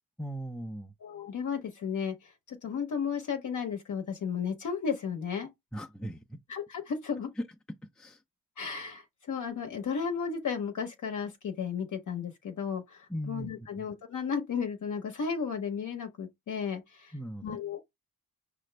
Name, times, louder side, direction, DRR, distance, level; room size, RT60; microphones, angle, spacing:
voice 1, 0.2-0.9 5.7-6.4 7.4-7.5 8.0-8.2 13.1-13.9 17.1-17.6, equal, ahead, 0.5 m, -38 dB
voice 2, 1.0-5.5 6.5-7.3 8.6-17.1 17.4-17.8, left 6 dB, 55° left, 0.8 m, -34 dB
5.6 x 2.5 x 3.2 m
cardioid pair, 80°, 36 cm